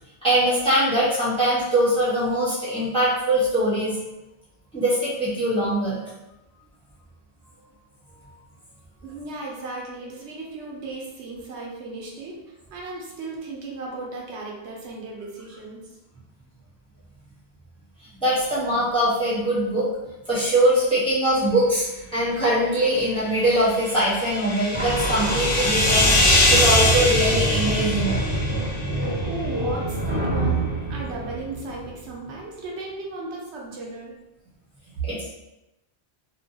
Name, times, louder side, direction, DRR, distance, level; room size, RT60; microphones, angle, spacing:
voice 1, 0.2-4.0 4.7-6.0 18.2-19.9 20.3-21.9 22.1-28.2 28.6-28.9 35.0-35.3, right 1 dB, 5° left, -10 dB, 0.8 m, -22 dB
voice 2, 9.0-15.9 29.2-34.1, right 3 dB, 85° right, -2 dB, 1.0 m, -36 dB
sound 1, 23.5-29.1, left 2 dB, 85° left, 1.0 m, -23 dB
sound 2, 24.7-32.1, right 1 dB, 25° right, 1.3 m, -26 dB
2.6 x 2.2 x 2.7 m, 0.94 s
omnidirectional pair, 1.1 m